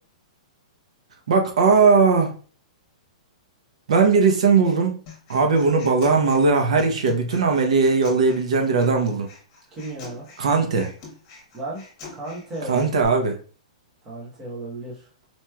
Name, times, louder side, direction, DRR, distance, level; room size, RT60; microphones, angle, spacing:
voice 1, 1.3-2.3 3.9-5.0 5.3-9.3 10.4-10.9 12.7-13.4, right 4 dB, 60° right, 0.8 m, -19 dB
Human voice, 5.1-13.0, left 4 dB, 25° left, 1.1 m, -44 dB
voice 2, 9.7-10.3 11.5-11.8 12.1-12.8 14.0-15.1, right 2 dB, 15° right, 0.9 m, -34 dB
4.3 x 3.0 x 2.3 m
hypercardioid pair, 180°, 4 cm